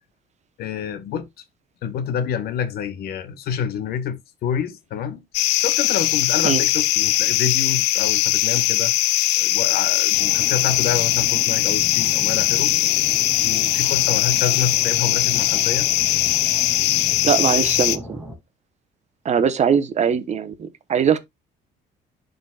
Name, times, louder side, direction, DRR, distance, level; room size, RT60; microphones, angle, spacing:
voice 1, 0.6-1.3 1.8-5.2 5.6-8.9 9.4-12.7 13.4-15.9, left 8 dB, 65° left, 1.0 m, -27 dB
sound 1, 5.3-18.0, left 16 dB, 85° left, 0.5 m, -20 dB
sound 2, 10.1-18.4, equal, 5° right, 2.3 m, -37 dB
voice 2, 17.2-18.2 19.2-21.2, right 7 dB, 40° right, 0.9 m, -21 dB
11.5 x 4.0 x 2.3 m
cardioid pair, 110°, 17 cm